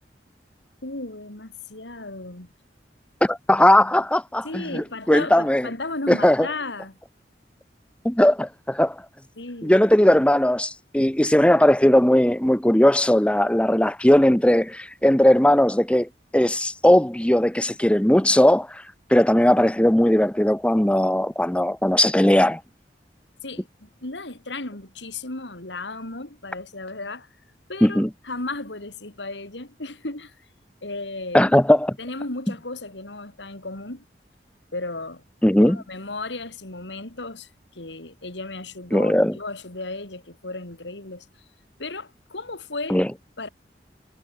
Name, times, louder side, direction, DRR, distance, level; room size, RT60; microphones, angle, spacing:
voice 1, 0.8-2.5 4.4-7.0 9.4-9.8 23.4-27.3 27.7-30.3 30.8-31.5 32.0-34.1 34.7-35.2 35.6-41.3 41.8-43.0 43.4-43.5, left 2 dB, 85° left, 3.6 m, -35 dB
voice 2, 3.2-5.7 6.1-6.5 8.0-9.0 9.6-18.8 19.1-22.6 27.8-28.1 31.3-32.0 35.4-35.8 38.9-39.4 42.9-43.1, left 1 dB, 5° left, 0.7 m, -18 dB
head